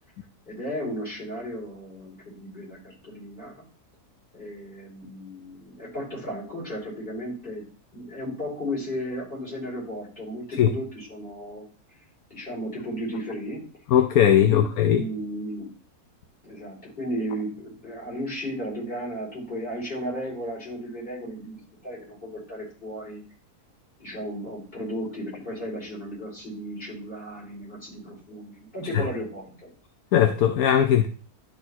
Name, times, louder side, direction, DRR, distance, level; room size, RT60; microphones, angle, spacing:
voice 1, 0.5-3.5 4.3-7.6 7.9-11.6 12.3-13.6 14.5-15.7 16.4-23.2 24.0-29.7, equal, 35° left, 5.0 m, -34 dB
voice 2, 13.9-15.0 28.9-29.0 30.1-31.1, left 10 dB, 75° left, 1.1 m, -19 dB
12.0 x 4.3 x 4.2 m
omnidirectional pair, 1.6 m